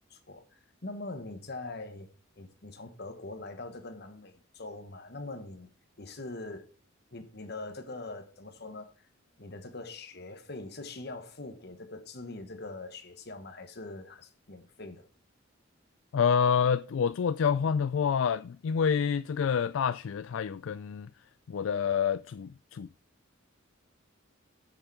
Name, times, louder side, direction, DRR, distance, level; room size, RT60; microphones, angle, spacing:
voice 1, 0.1-2.1 2.4-5.7 6.0-6.7 7.1-8.9 9.4-15.1, left 2 dB, 50° left, 1.4 m, -42 dB
voice 2, 16.1-21.1 21.5-22.9, left 6 dB, 70° left, 0.4 m, -28 dB
8.1 x 6.6 x 5.9 m
head